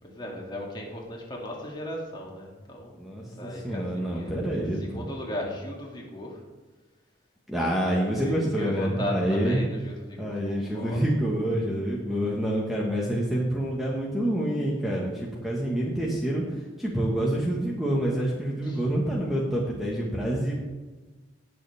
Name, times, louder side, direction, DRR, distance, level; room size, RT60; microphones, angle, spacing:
voice 1, 0.0-3.0 3.4-6.4 8.2-11.0 18.6-18.8, equal, 25° left, -2 dB, 2.4 m, -36 dB
voice 2, 3.0-5.1 7.5-9.6 10.2-16.4 16.8-20.5, right 1 dB, ahead, -4 dB, 1.4 m, -27 dB
19.0 x 6.9 x 3.5 m, 1.2 s
head